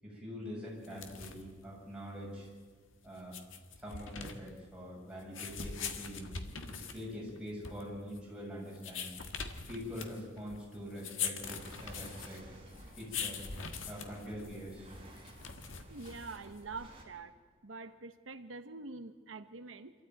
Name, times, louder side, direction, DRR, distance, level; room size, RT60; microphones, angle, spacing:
voice 1, 0.0-2.5 3.0-3.3 3.8-6.3 6.9-9.1 9.7-12.4 13.0-13.4 13.9-14.9, equal, 5° right, -5 dB, 7.7 m, -44 dB
sound 1, 0.8-16.7, left 6 dB, 85° left, 1.8 m, -43 dB
sound 2, 11.4-17.0, right 1 dB, 30° right, 4.3 m, -53 dB
voice 2, 15.9-17.3 17.6-19.9, right 3 dB, 80° right, 10 dB, 1.0 m, -45 dB
26.0 x 14.0 x 9.3 m, 1.6 s
head